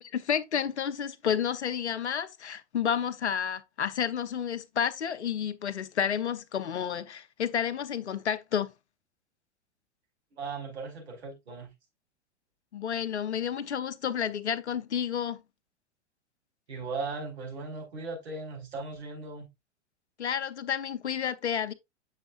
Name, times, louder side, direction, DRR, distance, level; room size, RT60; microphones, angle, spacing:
voice 1, 0.0-8.7 12.7-15.4 20.2-21.7, left 8 dB, 70° left, 0.9 m, -30 dB
voice 2, 10.3-11.7 16.7-19.5, right 3 dB, 65° right, 4.7 m, -38 dB
8.8 x 6.5 x 2.4 m
figure-of-eight pair, 100°, 35 cm